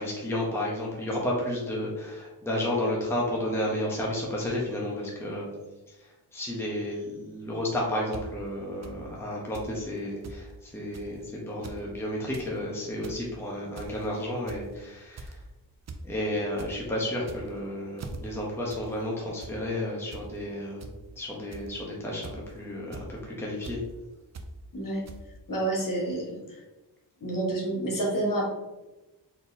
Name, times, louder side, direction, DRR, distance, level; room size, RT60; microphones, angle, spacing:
voice 1, 0.0-5.5 6.3-15.4 16.0-23.8, left 1 dB, 5° left, -4 dB, 0.8 m, -32 dB
sound 1, 8.1-8.2 8.8-8.9 9.5-9.7 10.0-10.4 10.9-11.1 11.5-11.8 12.2-12.5 12.9-13.2 13.8-14.1 14.5-14.7 15.2-15.4 15.9-16.0 16.3-16.7 17.2-17.6 18.0-18.2 18.7-18.8 19.1-19.5 20.1-20.2 20.8-20.9 21.5-21.8 22.2-22.5 22.9-23.1 23.6-23.8 24.3-24.5 25.1-25.2, right 3 dB, 40° right, 0.5 m, -41 dB
voice 2, 25.5-26.6 27.2-28.5, right 2 dB, 50° left, -2 dB, 1.3 m, -29 dB
4.2 x 3.9 x 2.6 m, 1.1 s
wide cardioid pair, 130°, 42 cm